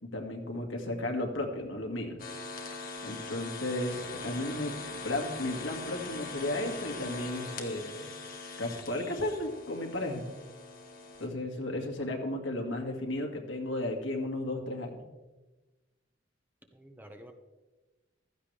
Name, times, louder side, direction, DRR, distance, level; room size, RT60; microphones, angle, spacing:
voice 1, 0.0-2.2 3.0-4.7 5.0-8.1 8.6-10.3 11.2-15.0, left 1 dB, 80° left, 2 dB, 2.2 m, -34 dB
sound 1, 2.2-11.3, left 3 dB, 50° left, 1.8 m, -42 dB
voice 2, 11.3-12.1 16.7-17.3, equal, 10° right, 4 dB, 1.2 m, -52 dB
15.5 x 13.5 x 3.4 m, 1.2 s
head